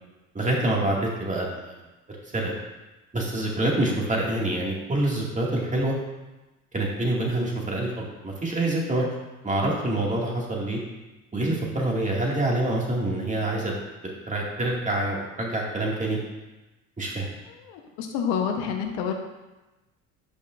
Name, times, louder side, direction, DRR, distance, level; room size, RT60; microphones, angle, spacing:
voice 1, 0.3-1.7 2.3-2.5 3.1-6.0 6.7-9.1 9.4-10.8 11.3-13.7 14.0-16.2 17.0-17.3, right 1 dB, 20° right, -3 dB, 2.2 m, -26 dB
voice 2, 17.6-19.1, left 7 dB, 75° left, 4 dB, 1.2 m, -28 dB
10.5 x 5.3 x 2.6 m, 1.1 s
hypercardioid pair, 65°, 39 cm